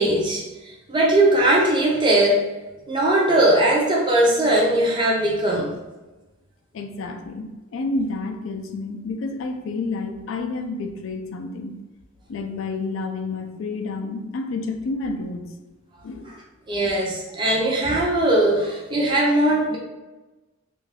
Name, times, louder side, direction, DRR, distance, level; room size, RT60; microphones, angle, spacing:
voice 1, 0.0-2.5 2.9-5.8 16.2-16.3 16.7-19.8, right 1 dB, 25° right, -3 dB, 0.5 m, -20 dB
voice 2, 6.7-11.8 12.3-15.5 16.0-16.4, left 3 dB, 70° left, 6 dB, 0.3 m, -29 dB
2.5 x 2.2 x 3.2 m, 1.1 s
head